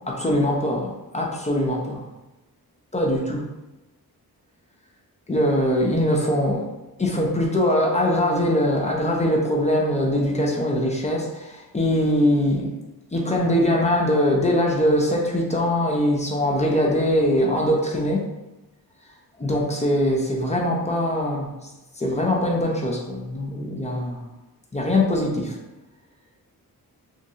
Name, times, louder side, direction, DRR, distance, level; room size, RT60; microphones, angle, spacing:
voice 1, 0.1-2.1 2.9-3.4 5.3-6.6 7.0-12.7 13.1-18.2 19.4-21.7 22.0-24.3 24.7-25.6, left 1 dB, 20° left, -2 dB, 0.4 m, -22 dB
3.1 x 2.6 x 2.7 m, 1.0 s
wide cardioid pair, 135°, 38 cm